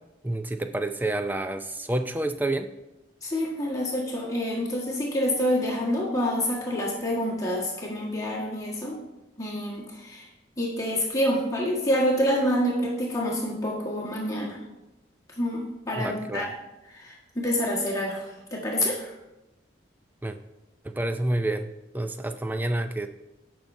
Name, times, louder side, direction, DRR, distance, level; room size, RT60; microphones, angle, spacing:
voice 1, 0.2-2.7 16.0-16.5 20.2-20.4 20.8-23.1, right 1 dB, 10° right, 8 dB, 0.4 m, -29 dB
voice 2, 3.2-9.0 9.4-10.3 10.6-14.6 15.4-16.5 16.9-19.1, equal, 15° left, -4 dB, 1.5 m, -27 dB
17.0 x 6.0 x 2.6 m, 0.97 s
head